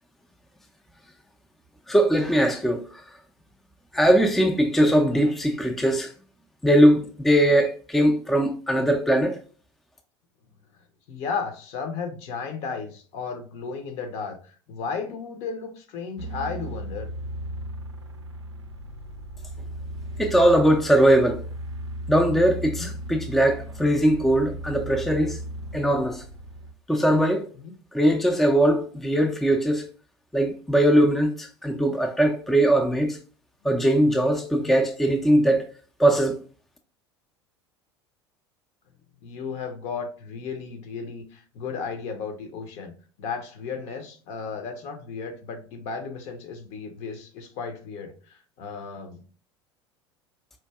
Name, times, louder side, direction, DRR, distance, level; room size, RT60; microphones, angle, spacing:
voice 1, 1.9-3.0 3.9-6.1 6.6-9.4 20.2-21.4 22.1-25.4 25.7-26.2 26.9-27.5 27.9-29.8 30.3-33.2 33.6-35.6 36.0-36.4, right 1 dB, ahead, 0.4 m, -20 dB
voice 2, 11.1-17.1 22.7-22.9 27.6-27.7 34.6-34.7 39.2-49.2, left 5 dB, 50° left, 0.7 m, -34 dB
sound 1, 16.2-26.7, right 1 dB, 85° right, 0.4 m, -36 dB
4.3 x 2.6 x 2.2 m
figure-of-eight pair, 70°, 14 cm